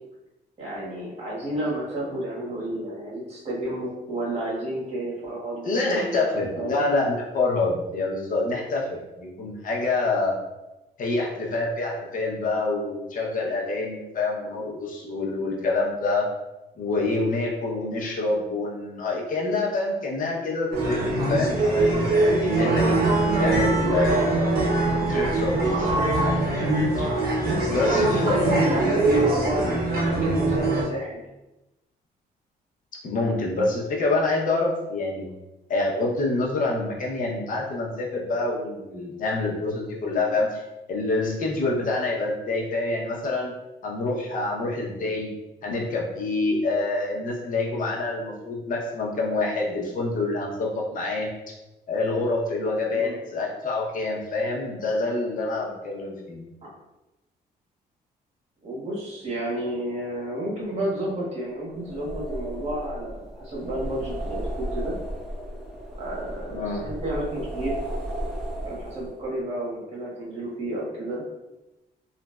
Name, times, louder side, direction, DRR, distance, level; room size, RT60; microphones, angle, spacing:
voice 1, 0.6-6.8 27.8-31.2 52.9-53.2 56.6-56.7 58.6-64.9 66.0-67.8 68.6-71.2, right 1 dB, 40° right, -6 dB, 1.3 m, -31 dB
voice 2, 5.6-10.3 11.0-16.2 16.8-22.1 22.4-23.0 23.4-24.8 25.1-26.5 27.0-27.1 27.7-28.7 33.0-35.3 35.7-40.6 40.9-43.5 43.8-45.3 45.6-51.3 51.9-56.5 66.5-66.9, left 2 dB, 55° left, -2 dB, 0.8 m, -26 dB
sound 1, 20.7-30.8, right 2 dB, 65° right, 0.7 m, -22 dB
sound 2, 61.7-69.3, right 1 dB, ahead, 0.7 m, -34 dB
3.0 x 2.5 x 2.3 m, 0.99 s
cardioid pair, 105°, 17 cm